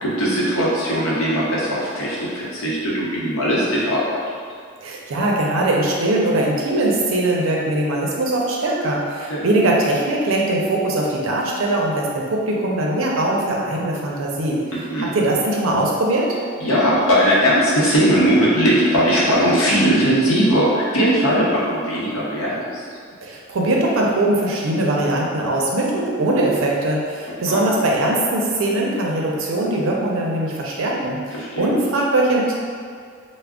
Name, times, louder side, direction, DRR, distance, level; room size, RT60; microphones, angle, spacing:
voice 1, 0.0-4.2 9.3-9.4 14.7-15.1 16.6-22.9 27.4-27.6 31.3-31.7, equal, 85° left, -6 dB, 0.7 m, -19 dB
voice 2, 4.8-14.6 15.0-16.4 23.2-32.5, right 1 dB, 70° right, -2 dB, 0.5 m, -21 dB
2.3 x 2.0 x 3.5 m, 2.2 s
head